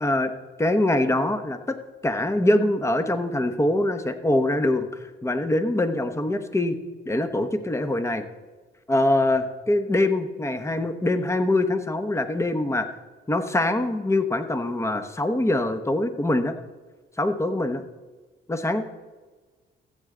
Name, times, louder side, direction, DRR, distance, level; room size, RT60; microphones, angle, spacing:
voice 1, 0.0-0.3 0.6-1.8 2.0-4.9 5.2-6.8 7.1-8.2 8.9-12.9 13.3-16.5 17.2-17.8 18.5-18.8, left 1 dB, 15° left, 9 dB, 1.0 m, -23 dB
14.5 x 8.0 x 3.8 m, 1.3 s
cardioid pair, 90°, 20 cm